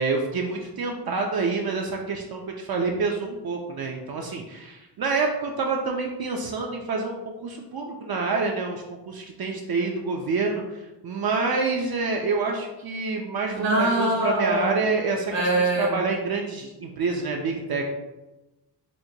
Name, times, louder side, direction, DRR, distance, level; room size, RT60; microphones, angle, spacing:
voice 1, 0.0-17.8, right 4 dB, 60° right, 1 dB, 0.5 m, -27 dB
voice 2, 13.5-14.8 15.3-15.9, right 1 dB, 80° right, -2 dB, 1.1 m, -23 dB
4.3 x 2.1 x 2.6 m, 1.0 s
wide cardioid pair, 90°, 43 cm